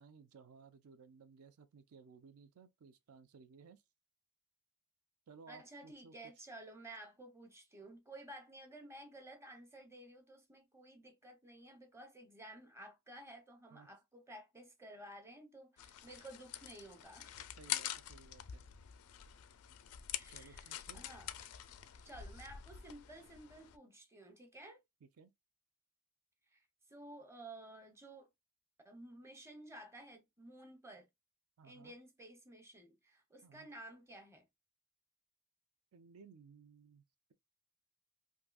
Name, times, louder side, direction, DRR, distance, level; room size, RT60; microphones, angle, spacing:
voice 1, 0.0-3.8 5.3-6.1 13.7-13.9 17.6-18.6 20.3-21.0 25.0-25.3 31.6-31.9 33.4-33.7 35.9-37.0, right 5 dB, 75° right, 0.4 m, -59 dB
voice 2, 5.5-17.4 20.1-21.3 22.0-24.8 26.5-28.3 28.8-31.1 31.6-34.5, right 1 dB, 10° right, 0.7 m, -54 dB
sound 1, 15.8-23.8, left 11 dB, 85° left, 0.4 m, -46 dB
3.6 x 2.6 x 2.3 m
head